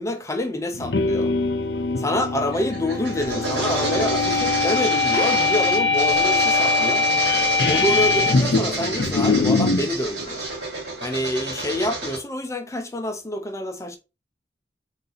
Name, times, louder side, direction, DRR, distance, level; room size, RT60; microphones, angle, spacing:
voice 1, 0.0-1.3 2.0-7.1 7.7-10.5 11.0-14.0, left 1 dB, 15° left, 0.6 m, -27 dB
sound 1, 0.7-9.9, left 4 dB, 60° left, 0.5 m, -22 dB
sound 2, 2.5-12.2, right 2 dB, 75° right, 2.3 m, -29 dB
4.0 x 2.7 x 3.9 m
head